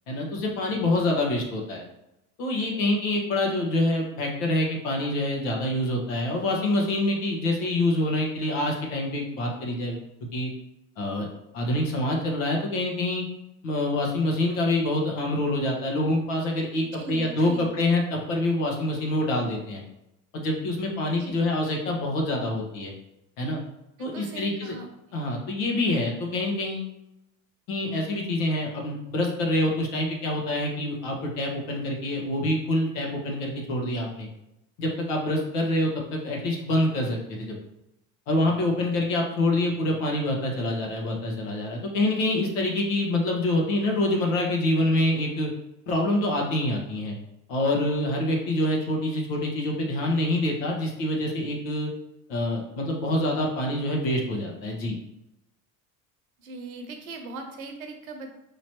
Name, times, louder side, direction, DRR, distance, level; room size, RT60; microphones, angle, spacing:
voice 1, 0.1-1.8 2.4-10.0 10.3-10.5 11.0-11.3 11.5-13.3 13.6-19.8 20.3-22.9 23.4-23.6 24.0-24.7 25.1-26.9 27.7-34.3 34.8-37.5 38.3-45.5 45.9-47.2 47.5-51.9 52.3-54.9, left 1 dB, 70° left, 0 dB, 1.4 m, -26 dB
voice 2, 16.8-17.8 21.2-21.4 24.0-25.2 56.4-58.3, right 2 dB, 90° right, 5 dB, 0.8 m, -40 dB
5.0 x 3.0 x 2.9 m, 0.88 s
hypercardioid pair, 75°, 41 cm